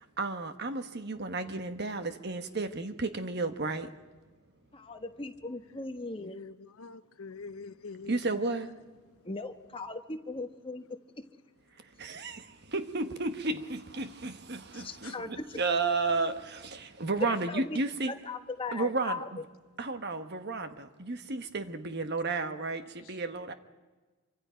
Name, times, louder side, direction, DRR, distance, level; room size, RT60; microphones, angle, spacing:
voice 1, 0.2-3.9 8.1-8.7 12.0-18.1 18.7-19.4 19.8-23.5, right 3 dB, 50° right, 9 dB, 1.2 m, -33 dB
voice 2, 4.7-6.4 9.2-10.8 14.7-15.6 17.2-17.8 18.1-19.2, left 3 dB, 25° left, 6 dB, 1.2 m, -38 dB
voice 3, 6.2-8.1, left 4 dB, 75° left, 12 dB, 0.8 m, -45 dB
26.5 x 25.0 x 5.1 m, 1.3 s
head